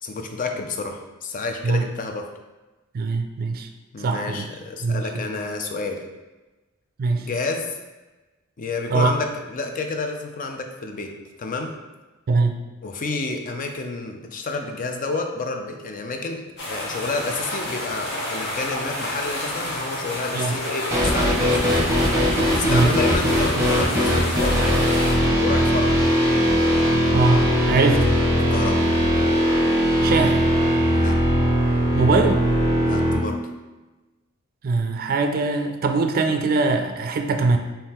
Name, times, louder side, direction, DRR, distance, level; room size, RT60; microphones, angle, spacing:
voice 1, 0.0-2.3 3.9-6.0 7.3-7.7 8.6-11.7 12.8-21.8 22.1-24.9 25.3-26.1 28.3-28.8 30.9-31.2 32.8-33.4, left 3 dB, 40° left, 4 dB, 0.5 m, -30 dB
voice 2, 2.9-3.7 4.0-4.4 4.8-5.2 7.0-7.3 8.9-9.1 12.3-12.6 20.3-20.6 22.7-22.9 27.1-28.1 30.0-30.5 31.9-32.4 34.6-37.6, right 3 dB, 45° right, 5 dB, 0.4 m, -22 dB
sound 1, 16.6-25.1, left 1 dB, 60° left, 1.0 m, -29 dB
sound 2, 20.9-33.2, equal, 15° right, 0.9 m, -20 dB
3.6 x 2.7 x 4.2 m, 1.1 s
head